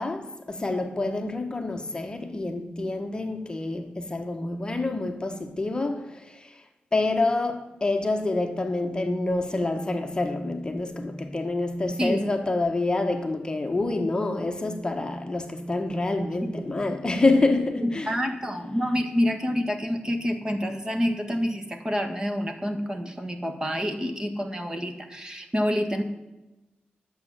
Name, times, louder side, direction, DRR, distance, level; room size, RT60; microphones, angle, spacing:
voice 1, 0.0-18.2, left 2 dB, 25° left, 1.1 m, -27 dB
voice 2, 17.8-26.0, equal, 20° right, 1.6 m, -27 dB
11.5 x 7.9 x 7.3 m
wide cardioid pair, 110°, 3 cm